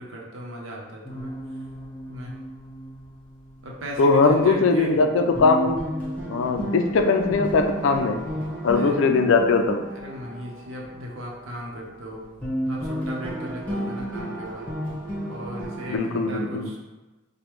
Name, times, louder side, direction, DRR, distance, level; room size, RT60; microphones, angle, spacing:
voice 1, 0.0-1.3 2.1-2.3 3.6-4.9 8.7-9.0 9.9-12.2 12.7-14.7 15.2-16.8, equal, 80° right, -2 dB, 0.8 m, -37 dB
sound 1, 1.0-4.9 5.3-12.1 12.4-16.0, equal, 10° left, 0.9 m, -33 dB
voice 2, 4.0-5.8 6.3-8.3 8.6-9.9 15.9-16.7, left 3 dB, 75° left, 6 dB, 0.4 m, -20 dB
5.0 x 2.2 x 3.1 m, 1.1 s
head